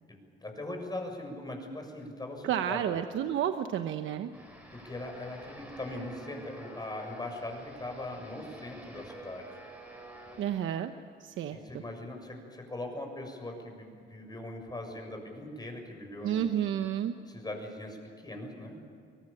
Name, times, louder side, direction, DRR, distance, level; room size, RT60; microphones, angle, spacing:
voice 1, 0.1-2.9 4.7-9.6 11.5-16.5 17.3-18.8, left 1 dB, 20° left, 3 dB, 6.9 m, -40 dB
voice 2, 2.4-4.3 10.4-10.9 11.2-11.8 16.2-17.1, right 9 dB, 80° right, 8 dB, 1.0 m, -31 dB
sound 1, 4.3-10.6, right 1 dB, 5° right, 6.7 m, -49 dB
24.0 x 19.0 x 8.8 m, 2.4 s
cardioid pair, 90°, 20 cm